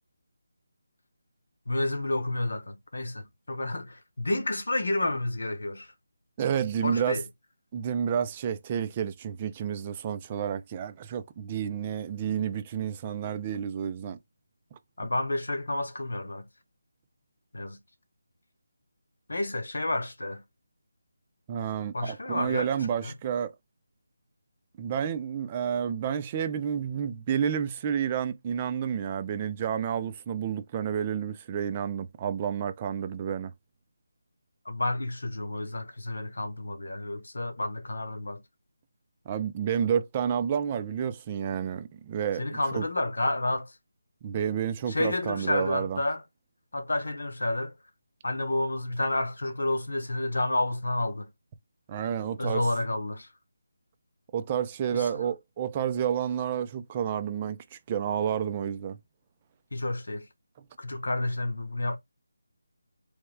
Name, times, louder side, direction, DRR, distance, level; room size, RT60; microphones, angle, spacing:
voice 1, 1.7-5.9 6.8-7.2 15.0-16.5 17.5-17.8 19.3-20.4 21.9-22.7 23.0-23.1 34.6-38.4 42.4-43.7 44.9-46.2 46.7-47.7 48.2-51.3 52.4-53.3 54.9-55.1 59.7-60.3 60.8-62.0, left 2 dB, 80° left, 1.0 m, -30 dB
voice 2, 6.4-7.2 7.7-14.2 14.7-14.8 21.5-23.5 24.8-33.5 39.3-42.4 42.7-42.8 44.2-46.0 51.9-52.7 54.3-59.0, right 8 dB, 20° right, 0.4 m, -30 dB
3.5 x 3.2 x 3.2 m
figure-of-eight pair, 170°, 0 cm